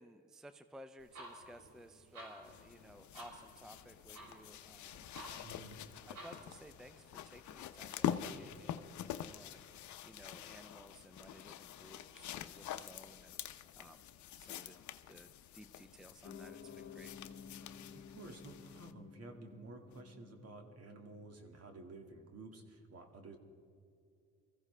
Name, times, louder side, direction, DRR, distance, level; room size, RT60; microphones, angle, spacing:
voice 1, 0.0-5.5 6.1-9.6 10.0-13.4 13.8-14.0 14.4-14.8 15.1-17.1, right 1 dB, ahead, 10 dB, 0.5 m, -57 dB
sound 1, 1.0-6.6, right 1 dB, 85° right, 4.5 m, -54 dB
sound 2, 2.4-18.9 19.9-20.0, left 10 dB, 70° left, 0.7 m, -46 dB
voice 2, 5.4-5.8 17.9-23.4, right 2 dB, 55° right, 4 dB, 2.0 m, -52 dB
Piano, 16.2-22.8, left 6 dB, 50° left, 1.0 m, -55 dB
23.0 x 15.0 x 3.3 m, 2.5 s
cardioid pair, 90°, 30 cm